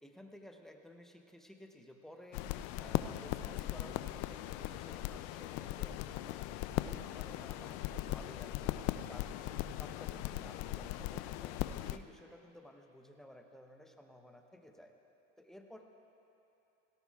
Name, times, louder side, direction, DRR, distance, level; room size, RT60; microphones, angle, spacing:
voice 1, 0.0-2.5 2.8-6.4 6.7-11.5 11.8-14.9 15.4-15.9, left 1 dB, ahead, 4 dB, 0.7 m, -55 dB
sound 1, 2.3-12.0, left 14 dB, 45° left, 0.4 m, -39 dB
17.5 x 17.0 x 2.4 m, 2.9 s
supercardioid pair, 120°, 36 cm